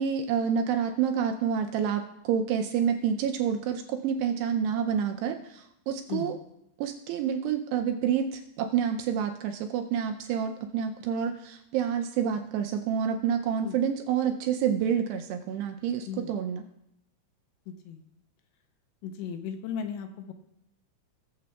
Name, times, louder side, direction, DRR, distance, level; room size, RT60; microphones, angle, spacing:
voice 1, 0.0-6.4 6.8-16.6, right 8 dB, 80° right, 5 dB, 2.5 m, -28 dB
voice 2, 17.7-18.0 19.0-20.3, left 7 dB, 80° left, 6 dB, 3.0 m, -36 dB
20.0 x 7.7 x 2.3 m, 0.80 s
omnidirectional pair, 5.3 m